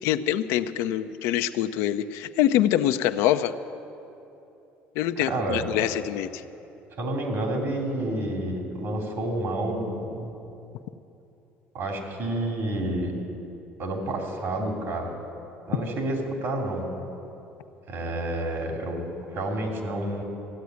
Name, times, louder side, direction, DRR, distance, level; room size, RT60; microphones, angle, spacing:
voice 1, 0.0-3.5 5.0-6.3, left 12 dB, 80° left, 10 dB, 0.5 m, -24 dB
voice 2, 5.2-5.6 7.0-10.3 11.7-13.1 13.8-15.1 15.7-16.9 17.9-20.2, right 1 dB, 60° right, 2 dB, 3.1 m, -29 dB
15.0 x 8.5 x 9.5 m, 2.8 s
supercardioid pair, 90°, 5 cm